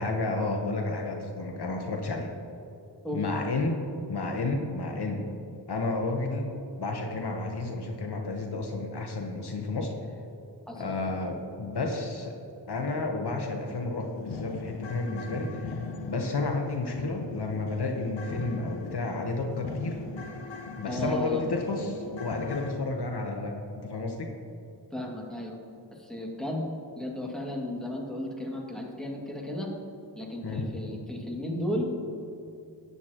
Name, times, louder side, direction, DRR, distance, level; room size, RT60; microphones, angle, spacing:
voice 1, 0.0-2.3 3.1-3.8 4.1-5.3 5.7-6.5 6.8-9.9 10.8-12.4 12.7-15.8 16.0-20.0 20.7-24.3 30.4-30.7, left 3 dB, 60° left, 3 dB, 1.1 m, -31 dB
sound 1, 13.7-22.7, left 4 dB, 90° left, 0.8 m, -39 dB
voice 2, 20.9-21.4 24.9-25.6 26.0-26.7 27.0-29.7 30.2-31.9, left 1 dB, ahead, -2 dB, 2.2 m, -34 dB
12.5 x 9.7 x 3.0 m, 2.7 s
cardioid pair, 50°, 44 cm